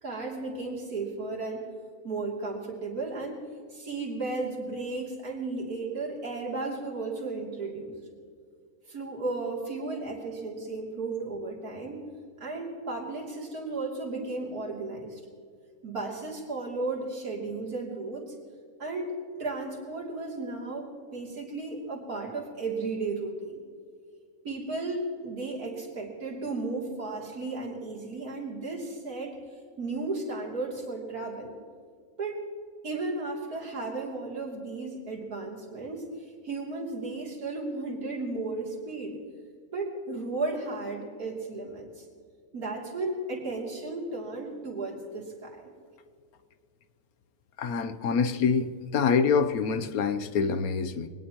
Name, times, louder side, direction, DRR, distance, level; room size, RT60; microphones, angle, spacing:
voice 1, 0.0-1.7 2.0-3.4 3.7-8.0 8.9-12.0 12.4-15.2 15.8-18.4 18.8-23.6 24.4-29.4 29.8-31.5 32.2-32.5 32.8-39.2 39.7-42.1 42.5-45.7, right 3 dB, 75° right, -2 dB, 3.6 m, -34 dB
voice 2, 47.6-51.1, left 5 dB, 75° left, 11 dB, 1.3 m, -26 dB
23.5 x 19.0 x 3.0 m, 2.1 s
omnidirectional pair, 1.6 m